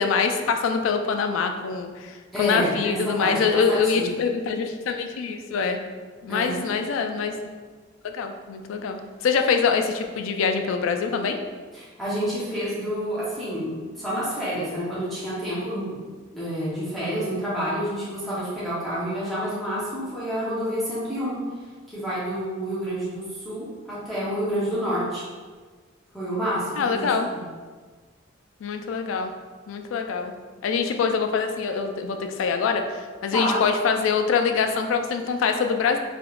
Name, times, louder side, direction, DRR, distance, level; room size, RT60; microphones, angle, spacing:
voice 1, 0.0-5.9 6.2-7.4 8.0-11.4 26.8-27.3 28.6-29.3 29.7-30.3 30.6-36.0, left 5 dB, 80° left, 6 dB, 0.3 m, -24 dB
voice 2, 2.3-4.1 6.3-6.6 11.7-16.0 16.3-21.4 21.9-25.2 26.1-27.4 33.3-33.6, equal, ahead, -11 dB, 0.7 m, -28 dB
3.4 x 2.9 x 2.3 m, 1.4 s
head